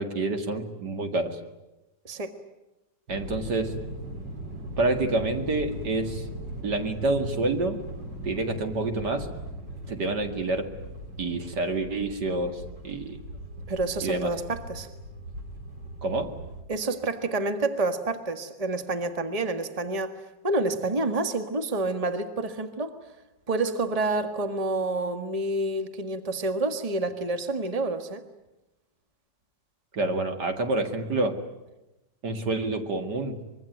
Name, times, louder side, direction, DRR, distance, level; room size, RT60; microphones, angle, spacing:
voice 1, 0.0-1.4 3.1-3.8 4.8-6.2 6.6-7.8 8.2-9.3 9.9-10.7 11.2-13.2 14.0-14.3 16.0-16.4 29.9-31.5 32.2-33.4, right 2 dB, 70° right, 6 dB, 2.7 m, -28 dB
sound 1, 3.1-16.6, right 1 dB, 85° right, 4.5 m, -39 dB
voice 2, 13.7-14.9 16.7-22.9 23.5-28.2, right 2 dB, 20° right, 8 dB, 1.6 m, -28 dB
25.0 x 22.5 x 9.3 m, 0.97 s
omnidirectional pair, 1.9 m